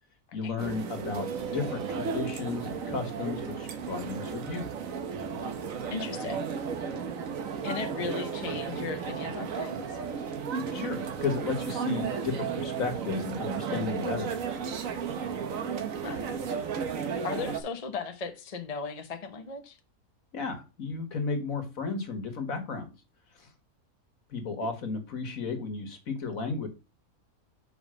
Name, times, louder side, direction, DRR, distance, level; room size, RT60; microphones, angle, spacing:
voice 1, 0.3-4.7 10.7-14.3 16.7-16.8 20.3-22.9 23.4-23.5 24.3-26.7, left 4 dB, 65° left, 1.8 m, -34 dB
sound 1, 0.6-17.6, right 6 dB, 65° right, 1.3 m, -34 dB
voice 2, 5.9-6.5 7.6-10.0 16.0-16.2 17.2-19.8 24.6-24.7, left 5 dB, 30° left, 0.8 m, -36 dB
5.2 x 4.9 x 6.3 m
omnidirectional pair, 1.6 m